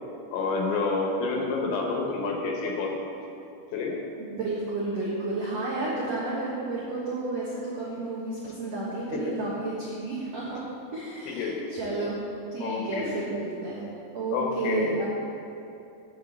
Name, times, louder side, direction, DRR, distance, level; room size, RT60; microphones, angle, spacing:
voice 1, 0.3-2.9 3.7-4.0 9.1-9.2 11.3-12.1 12.6-13.5 14.3-15.1, left 3 dB, 80° left, 0 dB, 3.5 m, -29 dB
voice 2, 4.2-10.6 10.9-12.2 12.5-13.8 14.1-15.0, right 2 dB, 70° right, -7 dB, 1.5 m, -31 dB
8.2 x 6.9 x 7.9 m, 2.7 s
omnidirectional pair, 5.2 m